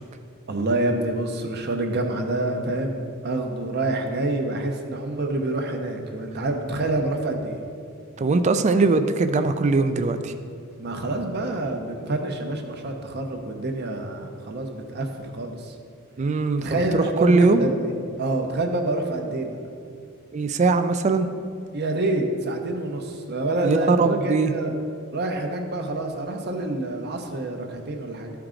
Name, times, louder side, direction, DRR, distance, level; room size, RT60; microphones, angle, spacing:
voice 1, 0.5-7.6 10.8-15.8 16.6-19.6 21.7-24.7 25.1-28.3, right 2 dB, 50° right, 4 dB, 0.8 m, -27 dB
voice 2, 8.2-10.3 16.2-16.6 16.9-17.7 20.3-21.3 23.6-24.5, right 3 dB, 30° right, 9 dB, 0.3 m, -20 dB
12.5 x 4.6 x 3.8 m, 2.3 s
head